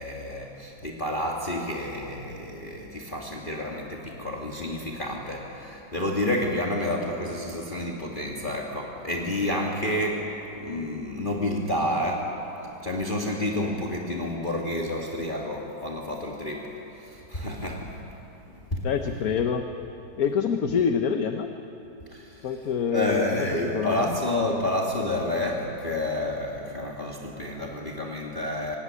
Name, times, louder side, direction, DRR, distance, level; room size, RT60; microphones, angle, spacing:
voice 1, 0.0-12.4 12.6-18.0 18.5-18.9 22.1-22.5 22.9-28.8, left 1 dB, 30° left, -1 dB, 2.3 m, -29 dB
voice 2, 18.8-19.6 20.2-21.5 22.4-24.2, left 6 dB, 60° left, 6 dB, 1.4 m, -26 dB
25.5 x 20.5 x 9.7 m, 3.0 s
omnidirectional pair, 1.9 m